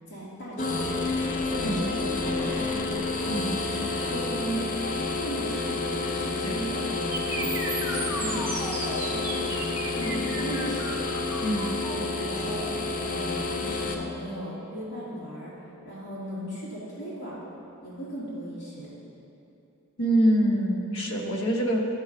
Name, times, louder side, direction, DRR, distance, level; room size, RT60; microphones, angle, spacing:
voice 1, 0.1-1.1 1.4-4.7 5.1-9.6 9.9-11.0 11.9-17.4 17.8-18.9, right 1 dB, 55° left, -9 dB, 2.2 m, -37 dB
sound 1, 0.6-13.9, left 3 dB, 40° left, 0.6 m, -29 dB
voice 2, 3.3-3.6 6.4-6.6 11.4-11.7 20.0-21.9, right 1 dB, 75° left, 0 dB, 1.1 m, -25 dB
sound 2, 7.1-15.1, right 2 dB, 10° right, 0.8 m, -36 dB
Bowed string instrument, 8.4-11.8, equal, 30° right, 1.5 m, -47 dB
12.5 x 4.1 x 5.1 m, 2.8 s
head